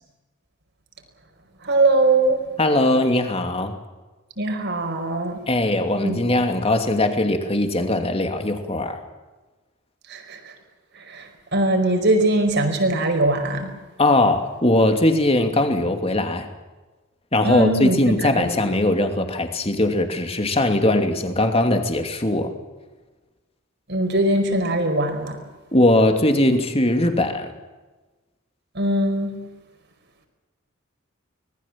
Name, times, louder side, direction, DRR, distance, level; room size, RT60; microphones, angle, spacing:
voice 1, 1.6-2.4 4.4-5.4 6.0-6.2 10.1-10.5 11.0-13.7 17.4-18.6 23.9-25.4 28.7-29.3, right 2 dB, 55° right, 5 dB, 5.1 m, -21 dB
voice 2, 2.6-3.8 5.5-9.0 14.0-16.5 17.3-22.5 25.7-27.5, left 1 dB, 30° left, 6 dB, 2.7 m, -20 dB
25.0 x 20.0 x 7.5 m, 1.2 s
head